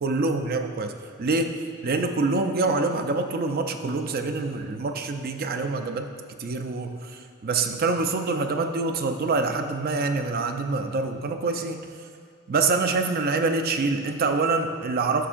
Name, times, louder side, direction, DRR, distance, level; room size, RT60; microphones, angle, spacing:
voice 1, 0.0-0.9 1.2-1.5 1.8-6.1 6.4-11.8 12.5-15.3, right 3 dB, 45° right, 6 dB, 0.5 m, -25 dB
11.5 x 7.0 x 2.5 m, 2.2 s
head